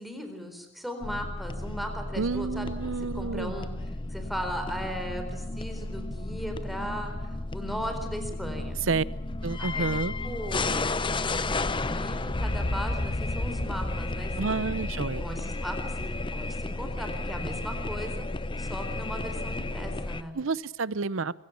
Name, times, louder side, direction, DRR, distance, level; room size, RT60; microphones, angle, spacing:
voice 1, 0.0-3.7 4.1-8.8 9.6-9.9 10.2-10.9 11.7-14.3 15.2-18.3 18.6-20.3, equal, ahead, 4.2 m, -37 dB
sound 1, 1.0-20.2, left 2 dB, 25° left, 0.8 m, -32 dB
voice 2, 2.2-3.5 8.9-9.0 9.4-10.1 14.4-15.2 20.3-21.3, right 4 dB, 80° right, 0.7 m, -29 dB
23.0 x 16.5 x 8.5 m
head